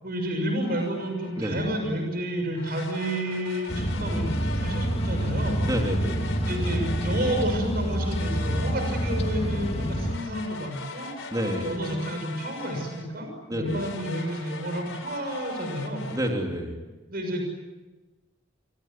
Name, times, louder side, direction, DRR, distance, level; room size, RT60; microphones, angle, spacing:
voice 1, 0.0-5.6 6.5-11.1 11.6-16.1 17.1-17.5, equal, 50° right, 4 dB, 6.6 m, -30 dB
sound 1, 0.6-1.8 2.5-7.6 8.1-13.2 13.6-16.3, left 4 dB, 80° left, 4.2 m, -41 dB
voice 2, 1.4-1.7 5.6-6.3 11.3-11.8 13.5-13.9 16.1-16.8, equal, 20° right, 2 dB, 3.5 m, -29 dB
sound 2, 3.7-10.1, equal, 30° left, 2.3 m, -27 dB
28.0 x 24.5 x 7.8 m, 1.2 s
head